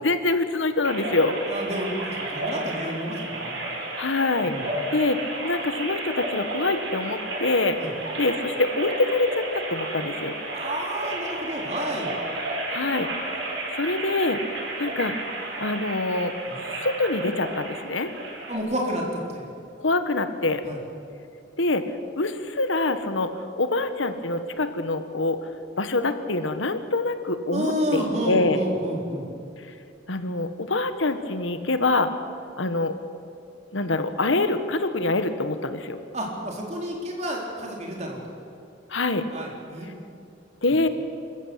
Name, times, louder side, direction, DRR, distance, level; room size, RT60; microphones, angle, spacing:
voice 1, 0.0-1.3 4.0-4.5 4.9-5.2 5.4-7.8 8.2-10.4 12.7-13.1 13.7-14.4 14.8-15.1 15.6-16.3 16.6-18.1 19.8-20.6 21.6-21.8 22.2-23.3 23.6-25.4 25.8-28.6 30.1-32.1 32.6-32.9 33.7-36.0 38.9-39.2 40.6-40.9, left 2 dB, 85° left, 10 dB, 1.4 m, -25 dB
sound 1, 0.8-18.6, right 2 dB, 75° right, 5.0 m, -32 dB
voice 2, 1.5-3.6 4.4-4.6 7.8-7.9 10.5-12.1 16.5-16.6 18.5-19.0 19.3-19.5 20.6-20.8 27.5-29.2 36.1-38.2 39.3-39.9, equal, 35° right, 0 dB, 3.9 m, -30 dB
26.0 x 14.5 x 8.1 m, 2.5 s
head